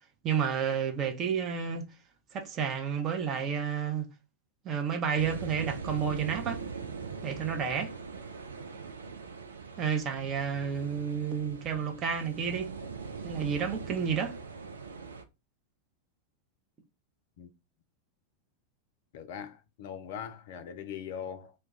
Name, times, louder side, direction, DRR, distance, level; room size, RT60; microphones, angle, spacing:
voice 1, 0.2-1.8 2.3-4.0 4.6-6.6 7.2-7.9 9.8-12.7 13.2-14.3, right 7 dB, 30° right, 0.6 m, -31 dB
sound 1, 5.2-15.2, right 5 dB, 70° right, 0.4 m, -41 dB
voice 2, 19.1-21.5, left 8 dB, 50° left, 0.4 m, -41 dB
2.2 x 2.2 x 3.8 m
figure-of-eight pair, 90°, 0 cm